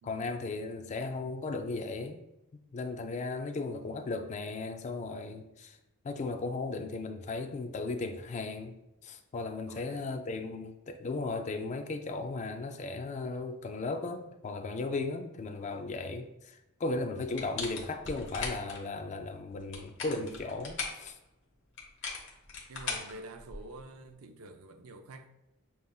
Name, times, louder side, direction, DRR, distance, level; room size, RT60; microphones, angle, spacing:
voice 1, 0.0-2.2 2.7-5.8 6.0-8.8 9.0-21.2, left 3 dB, 30° left, 0.3 m, -36 dB
voice 2, 9.7-10.2 22.7-25.3, right 2 dB, 70° right, 0.4 m, -48 dB
sound 1, 17.3-18.8 19.6-21.0 21.8-23.8, left 4 dB, 55° left, 0.9 m, -39 dB
6.8 x 2.5 x 2.3 m
head